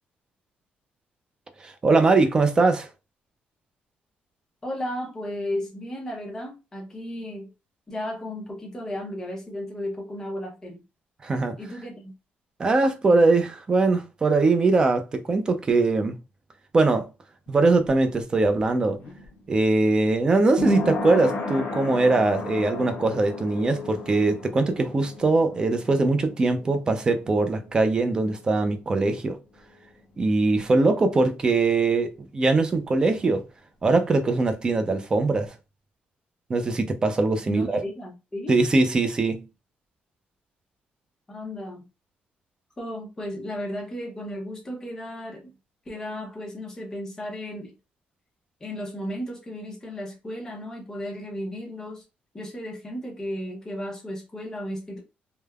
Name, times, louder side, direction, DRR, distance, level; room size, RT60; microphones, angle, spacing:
voice 1, 1.6-2.9 11.2-11.6 12.6-16.2 16.7-17.1 17.5-19.0 19.5-29.4 30.2-33.4 33.8-35.5 36.5-37.8 38.5-39.4, right 3 dB, 20° right, 0.4 m, -21 dB
voice 2, 4.6-7.5 7.9-10.8 11.6-12.1 37.5-38.5 41.3-41.9 42.8-45.5 45.9-47.7 48.6-52.0 52.3-55.0, left 1 dB, 15° left, 0.7 m, -34 dB
sound 1, 17.5-29.0 29.3-29.4, left 2 dB, 55° left, 0.6 m, -35 dB
3.3 x 2.1 x 2.3 m
cardioid pair, 175°, 4 cm